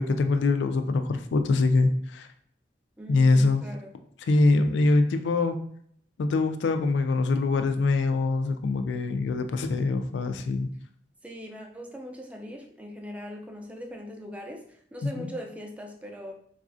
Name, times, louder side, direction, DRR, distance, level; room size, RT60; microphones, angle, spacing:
voice 1, 0.0-2.3 3.1-3.6 4.3-5.6 6.2-10.7 15.0-15.3, left 3 dB, 85° left, 8 dB, 0.3 m, -24 dB
voice 2, 3.0-3.9 11.2-16.3, equal, 10° right, 1 dB, 0.4 m, -40 dB
3.9 x 2.4 x 2.5 m, 0.65 s
head